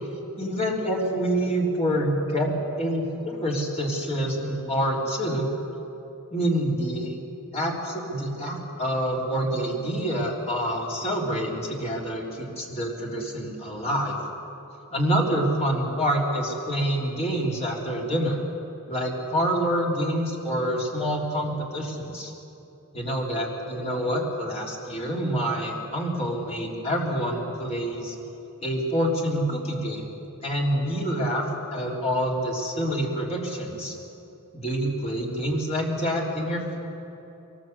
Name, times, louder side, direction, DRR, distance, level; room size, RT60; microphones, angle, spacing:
voice 1, 0.4-5.5 6.3-7.1 7.5-14.2 14.9-18.4 18.9-22.3 22.9-28.2 28.6-30.1 30.4-34.0 34.5-36.8, equal, 30° left, -2 dB, 3.5 m, -27 dB
23.0 x 20.0 x 8.0 m, 2.9 s
head